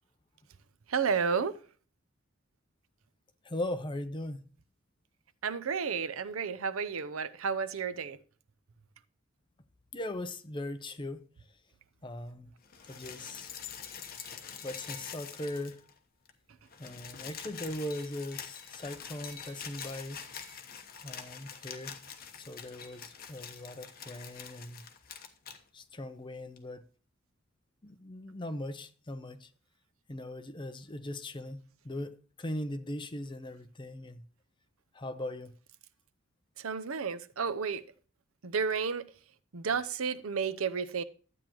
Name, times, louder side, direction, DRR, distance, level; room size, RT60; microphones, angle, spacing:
voice 1, 0.9-1.6 5.4-8.2 36.6-37.8 38.4-39.1 39.5-41.0, right 6 dB, 85° right, 0.7 m, -32 dB
voice 2, 3.4-4.4 9.9-11.2 12.0-12.5 12.9-13.5 14.6-15.8 16.8-20.2 21.0-21.9 22.4-24.8 25.7-26.8 27.8-29.5 30.1-31.6 31.8-32.1 32.4-34.2 34.9-35.5, left 1 dB, 25° left, 0.7 m, -39 dB
sound 1, 12.6-16.0 16.2-16.3 16.6-25.6 26.6-26.7, left 7 dB, 45° left, 1.1 m, -45 dB
12.5 x 8.8 x 3.0 m
head